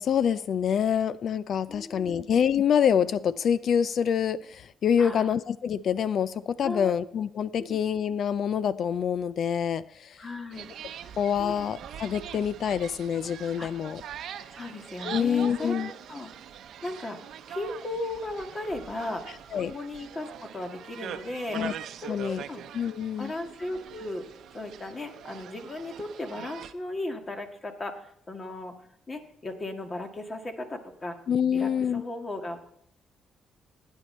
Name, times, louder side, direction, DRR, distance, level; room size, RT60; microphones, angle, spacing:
voice 1, 0.0-10.3 11.2-14.0 15.0-15.9 19.5-19.7 21.5-21.7 22.1-22.4 22.7-23.3 31.3-32.0, left 8 dB, 60° left, 17 dB, 0.4 m, -26 dB
voice 2, 1.7-2.3 5.0-5.3 6.6-7.0 7.6-7.8 10.2-10.7 11.0-11.1 11.4-11.7 13.6-13.7 14.5-15.7 16.1-16.3 16.8-17.2 17.5-21.6 22.0-22.6 23.2-24.2 24.5-28.7 29.1-31.2 31.5-32.7, left 2 dB, 30° left, 5 dB, 1.7 m, -36 dB
sound 1, 10.5-26.7, right 9 dB, 75° right, 0.7 m, -43 dB
15.0 x 9.4 x 4.3 m, 0.69 s
cardioid pair, 90°, 0 cm